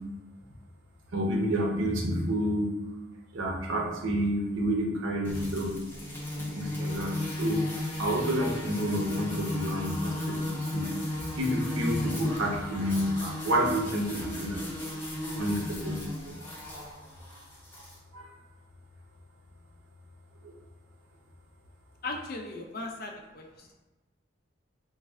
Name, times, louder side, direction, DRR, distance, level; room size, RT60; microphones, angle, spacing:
voice 1, 1.1-2.8 3.3-5.8 6.4-7.6 8.0-10.9 11.4-15.0 15.4-16.3 18.1-18.3 20.4-20.5, equal, 75° right, 0 dB, 0.6 m, -29 dB
sound 1, 5.2-18.0, left 1 dB, 10° left, 0.6 m, -35 dB
voice 2, 22.0-23.5, left 2 dB, 45° left, 1 dB, 0.4 m, -37 dB
3.2 x 2.2 x 3.4 m, 1.1 s
head